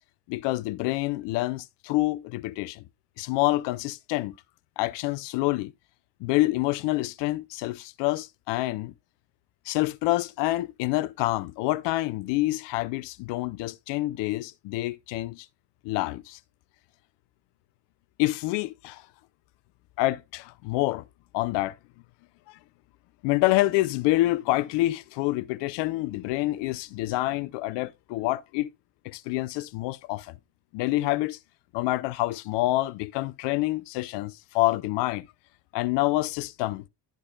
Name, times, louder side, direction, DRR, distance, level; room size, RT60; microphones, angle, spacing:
voice 1, 0.3-2.8 3.2-4.3 4.8-5.7 6.2-8.9 9.7-15.5 15.8-16.4 18.2-19.0 20.0-21.0 21.3-21.7 22.5-22.6 23.2-28.7 29.0-30.3 30.7-31.4 31.7-35.3 35.7-36.8, left 18 dB, 60° left, 0.6 m, -27 dB
10.5 x 8.2 x 2.2 m
hypercardioid pair, 50°, 47 cm